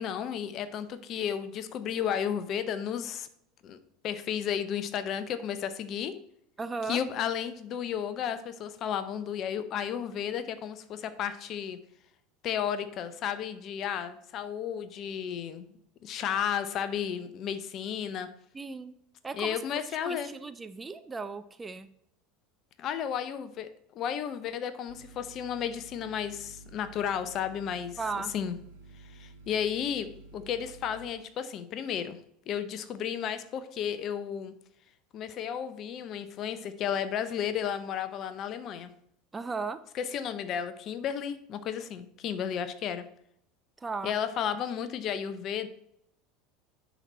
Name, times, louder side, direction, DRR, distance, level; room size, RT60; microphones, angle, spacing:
voice 1, 0.0-3.3 3.6-3.8 4.0-6.1 6.9-11.8 12.4-15.7 16.0-18.3 19.3-20.3 22.8-28.0 28.3-28.5 29.0-32.2 32.5-34.5 35.1-38.9 39.9-43.0 44.0-45.7, left 8 dB, 45° left, 12 dB, 0.7 m, -33 dB
voice 2, 6.6-7.0 18.5-18.9 19.2-21.9 28.0-28.3 39.3-39.8 43.8-44.1, right 4 dB, 20° right, 11 dB, 0.5 m, -36 dB
sound 1, 24.9-31.1, right 3 dB, 70° right, 2.2 m, -51 dB
10.0 x 4.1 x 4.3 m, 0.73 s
figure-of-eight pair, 75°, 0 cm